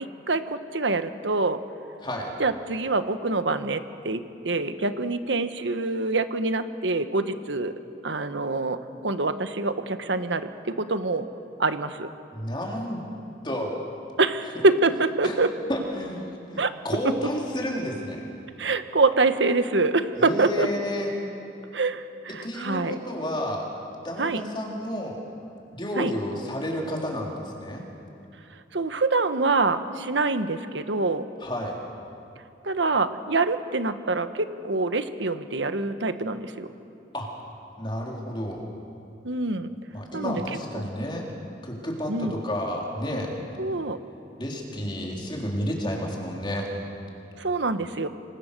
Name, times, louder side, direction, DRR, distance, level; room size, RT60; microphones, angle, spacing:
voice 1, 0.0-1.6 2.4-7.7 8.0-11.3 11.6-12.1 14.2-15.5 16.6-16.7 17.0-17.1 18.6-20.7 21.7-23.0 24.2-24.4 26.0-26.1 28.7-31.3 32.6-36.7 39.2-39.7 40.1-40.4 42.1-42.3 43.6-44.0 47.4-48.1, right 3 dB, 90° right, 10 dB, 1.3 m, -25 dB
voice 2, 2.0-2.3 12.3-13.1 13.4-13.8 14.6-14.7 15.2-15.4 15.7-18.2 20.2-21.2 22.4-23.7 24.0-25.2 25.7-27.8 31.4-31.8 37.1-37.3 37.8-38.6 39.9-41.3 41.6-43.3 44.4-46.7, equal, 25° left, -1 dB, 3.8 m, -31 dB
26.5 x 23.5 x 6.8 m, 2.8 s
head